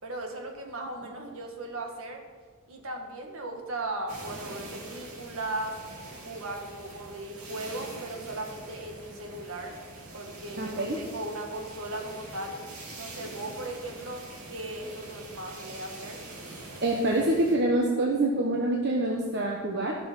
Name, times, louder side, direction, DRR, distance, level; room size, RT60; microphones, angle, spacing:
voice 1, 0.0-2.2 2.7-5.8 6.2-9.7 10.1-12.6 12.9-16.2, right 2 dB, 70° right, 2 dB, 1.8 m, -37 dB
sound 1, 4.1-17.6, right 2 dB, 90° right, 2.5 m, -44 dB
voice 2, 10.6-11.0 16.8-19.9, right 1 dB, 55° right, 0 dB, 1.0 m, -26 dB
14.0 x 6.2 x 5.5 m, 1.5 s
head